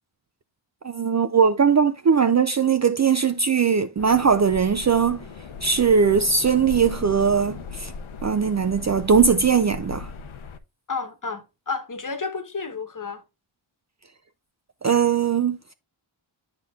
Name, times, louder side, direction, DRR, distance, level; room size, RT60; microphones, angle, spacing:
voice 1, 0.8-5.2 5.6-7.9 8.2-10.1 14.8-15.6, right 6 dB, 35° right, 0.4 m, -20 dB
sound 1, 4.0-10.6, left 5 dB, 75° left, 0.8 m, -38 dB
voice 2, 10.9-13.2, left 4 dB, 40° left, 1.1 m, -31 dB
8.6 x 6.0 x 2.4 m
cardioid pair, 60°, 50 cm